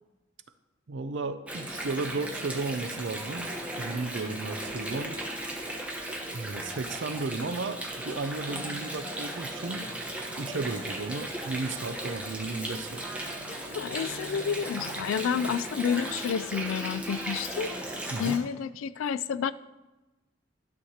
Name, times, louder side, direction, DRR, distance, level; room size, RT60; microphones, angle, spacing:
voice 1, 0.9-5.2 6.3-9.9 10.2-13.0 18.1-18.4, right 3 dB, 65° right, 10 dB, 0.5 m, -34 dB
Water, 1.5-18.4, right 1 dB, 5° right, 1.0 m, -36 dB
voice 2, 13.7-17.7 18.2-19.5, left 7 dB, 90° left, 16 dB, 0.3 m, -30 dB
12.0 x 6.4 x 2.9 m, 1.1 s
head